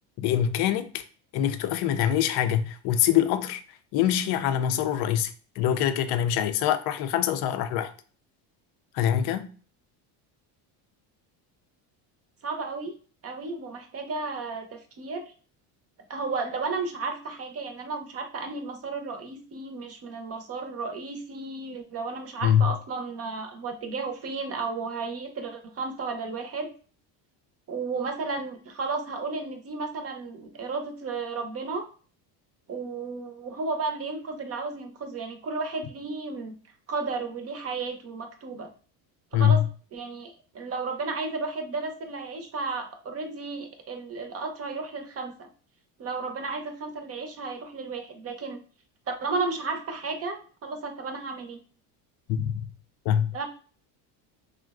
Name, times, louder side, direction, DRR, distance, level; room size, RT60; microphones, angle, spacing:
voice 1, 0.2-1.0 1.3-3.6 3.9-5.3 5.6-7.9 8.9-9.5 22.4-22.7 39.3-39.7 52.3-52.7 53.0-53.4, left 10 dB, 60° left, 0.5 m, -24 dB
voice 2, 12.4-12.9 13.2-15.3 16.1-26.7 27.7-31.9 32.7-36.5 36.9-38.7 39.3-39.6 39.9-45.5 46.0-48.6 49.1-51.6 53.3-53.5, right 4 dB, 35° right, 0.6 m, -33 dB
3.6 x 2.1 x 2.3 m
supercardioid pair, 110°, 44 cm